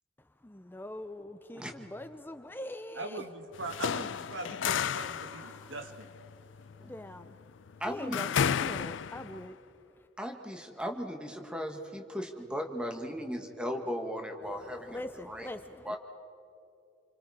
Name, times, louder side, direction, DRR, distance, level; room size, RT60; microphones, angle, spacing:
voice 1, 0.4-3.2 5.3-5.7 6.9-7.4 7.9-9.6 14.5-16.0, left 1 dB, 10° left, 9 dB, 0.5 m, -43 dB
voice 2, 2.9-6.1, right 2 dB, 80° right, 6 dB, 1.8 m, -41 dB
sound 1, 3.5-9.5, left 7 dB, 75° left, 0.4 m, -33 dB
voice 3, 7.8-8.2 10.2-15.0 15.3-15.5 15.8-16.0, equal, 5° right, 4 dB, 1.5 m, -37 dB
29.0 x 24.5 x 4.8 m, 2.7 s
head